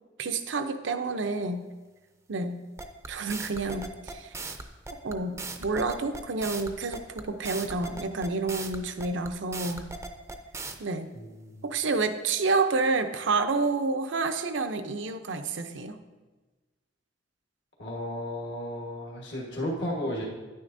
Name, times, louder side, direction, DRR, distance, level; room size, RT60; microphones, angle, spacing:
voice 1, 0.2-1.7 2.3-2.6 3.1-4.3 5.0-9.9 10.8-11.1 11.6-16.0, right 3 dB, 80° right, 9 dB, 0.6 m, -29 dB
sound 1, 2.8-10.8, right 3 dB, 15° right, 0.5 m, -38 dB
voice 2, 11.1-11.6 17.8-20.2, equal, 65° left, -3 dB, 1.5 m, -34 dB
9.7 x 9.4 x 2.6 m, 1.3 s
head